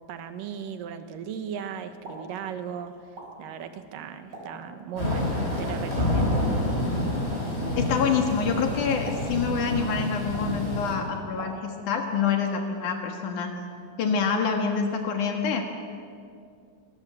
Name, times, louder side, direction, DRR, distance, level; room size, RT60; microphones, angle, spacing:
voice 1, 0.1-2.9 3.4-6.4, right 8 dB, 85° right, 9 dB, 2.9 m, -37 dB
Explosion, 1.8-12.1, right 1 dB, 30° right, 6.4 m, -47 dB
Thunder / Rain, 5.0-10.9, left 1 dB, 20° left, 5.0 m, -28 dB
voice 2, 7.7-13.5 14.0-15.6, left 6 dB, 70° left, 3 dB, 3.1 m, -26 dB
25.0 x 19.5 x 7.7 m, 2.3 s
omnidirectional pair, 3.8 m